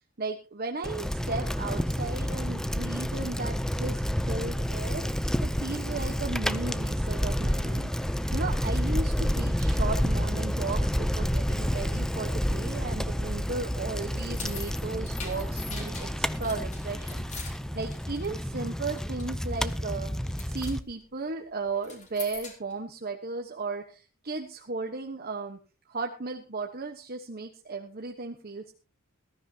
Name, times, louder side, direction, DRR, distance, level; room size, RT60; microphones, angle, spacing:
voice 1, 0.2-7.9 8.3-20.1 20.5-25.6 25.8-28.7, right 3 dB, 45° right, 3 dB, 1.2 m, -35 dB
Bicycle, 0.8-20.8, equal, ahead, 0.6 m, -29 dB
sound 1, 14.1-18.6 18.9-19.3 19.7-20.0 20.2-20.8 21.8-22.7, left 5 dB, 35° left, 4.1 m, -43 dB
20.5 x 13.0 x 2.9 m, 0.33 s
head